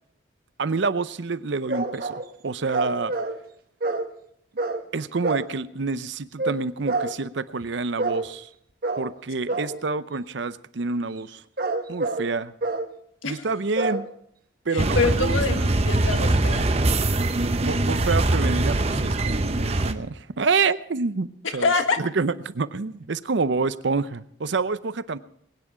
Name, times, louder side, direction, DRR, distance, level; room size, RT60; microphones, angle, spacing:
voice 1, 0.6-3.1 4.9-8.5 9.0-11.4 11.9-12.5 13.2-14.1 14.7-15.7 17.3-21.3 21.5-25.2, right 4 dB, 65° right, 15 dB, 0.6 m, -27 dB
sound 1, 1.7-2.3 2.7-3.4 3.8-4.1 4.6-4.8 5.2-5.5 6.4-6.6 6.9-7.2 8.0-8.3 8.8-9.1 9.5-9.8 11.3-12.3 12.6-12.9 13.8-14.0, right 3 dB, 50° right, 1.1 m, -27 dB
voice 2, 14.7-16.7 21.4-22.0, left 4 dB, 85° left, 7 dB, 1.5 m, -25 dB
sound 2, 14.8-19.9, right 2 dB, 30° right, 0.7 m, -22 dB
21.5 x 9.8 x 5.0 m, 0.68 s
head